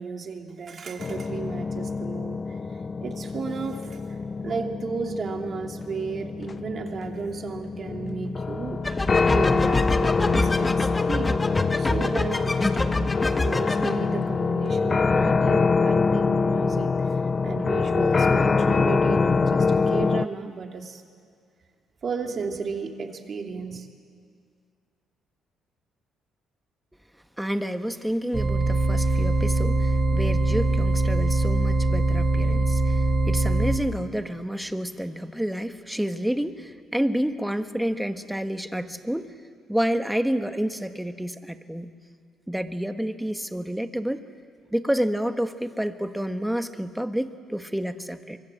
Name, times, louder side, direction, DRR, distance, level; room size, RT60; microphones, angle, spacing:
voice 1, 0.0-2.4 3.0-4.0 4.4-11.4 11.8-13.0 13.3-21.0 22.0-23.9, right 5 dB, 50° right, 3 dB, 2.9 m, -34 dB
sound 1, 1.0-20.2, left 4 dB, 35° left, 0.6 m, -25 dB
sound 2, 8.8-13.9, left 2 dB, 20° left, 1.5 m, -26 dB
voice 2, 27.4-39.3 39.7-41.9 42.5-44.2 44.7-48.4, equal, 5° right, 8 dB, 1.6 m, -29 dB
sound 3, 28.3-33.8, right 2 dB, 30° right, 3.6 m, -22 dB
24.0 x 23.5 x 7.8 m, 2.2 s
supercardioid pair, 70°, 0 cm